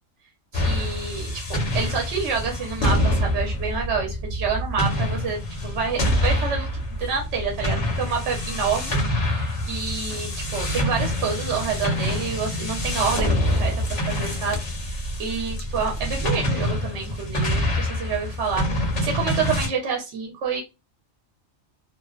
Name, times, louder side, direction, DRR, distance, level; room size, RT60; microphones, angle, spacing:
sound 1, 0.5-19.7, left 1 dB, 45° left, 0.8 m, -26 dB
voice 1, 0.5-20.6, right 5 dB, 60° right, 0 dB, 1.0 m, -28 dB
2.6 x 2.1 x 2.3 m, 0.25 s
omnidirectional pair, 1.4 m